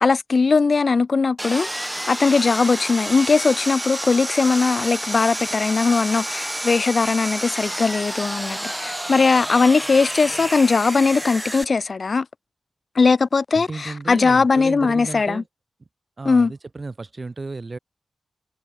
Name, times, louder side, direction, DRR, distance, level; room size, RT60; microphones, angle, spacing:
voice 1, 0.0-12.3 12.9-15.4 16.2-16.5, left 4 dB, 60° left, 1.0 m, -19 dB
Sawing, 1.4-11.6, right 1 dB, 10° right, 1.2 m, -30 dB
voice 2, 13.5-15.5 16.2-17.8, right 3 dB, 45° right, 3.9 m, -33 dB
cardioid pair, 65°, 0 cm